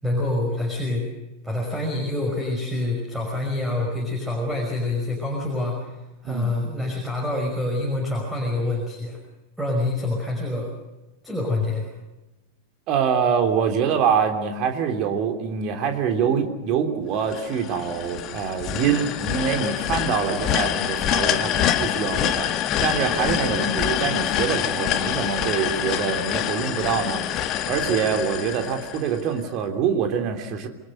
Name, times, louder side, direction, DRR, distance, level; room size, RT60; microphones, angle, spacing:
voice 1, 0.0-1.0 1.4-6.0 6.2-9.2 9.6-10.7 11.2-11.9, left 2 dB, 5° right, 0 dB, 5.5 m, -26 dB
voice 2, 12.9-27.2 27.7-30.7, right 7 dB, 40° right, 5 dB, 3.4 m, -25 dB
sound 1, 17.3-29.4, left 11 dB, 35° left, 1.4 m, -26 dB
27.0 x 21.0 x 6.6 m, 1.1 s
figure-of-eight pair, 90°, 0 cm